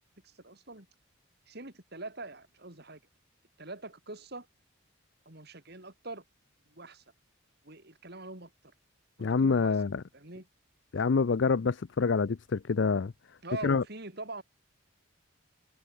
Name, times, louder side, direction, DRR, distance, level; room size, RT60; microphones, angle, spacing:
voice 1, 0.2-0.9 1.5-3.0 3.6-4.5 5.2-6.2 6.7-7.0 7.6-8.5 9.2-9.8 10.1-10.5 13.4-14.4, right 2 dB, 50° right, 3.5 m, -43 dB
voice 2, 9.2-10.0 10.9-13.1 13.6-13.8, left 4 dB, 55° left, 0.5 m, -26 dB
head